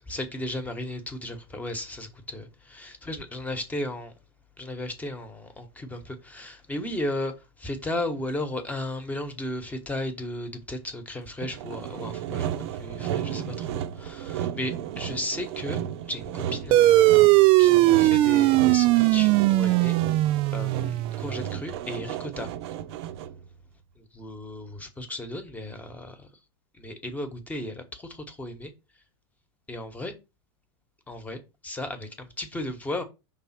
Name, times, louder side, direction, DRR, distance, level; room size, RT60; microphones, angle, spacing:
voice 1, 0.1-4.1 4.6-15.8 16.1-17.2 17.6-19.9 20.5-22.5 24.0-26.3 26.7-28.7 29.7-30.2 31.1-33.0, left 1 dB, 10° left, 1.2 m, -35 dB
Sawing, 11.4-23.5, right 10 dB, 65° right, 0.8 m, -34 dB
sound 1, 16.7-21.6, right 17 dB, 40° right, 0.4 m, -19 dB
5.6 x 3.4 x 5.7 m
supercardioid pair, 130°, 15 cm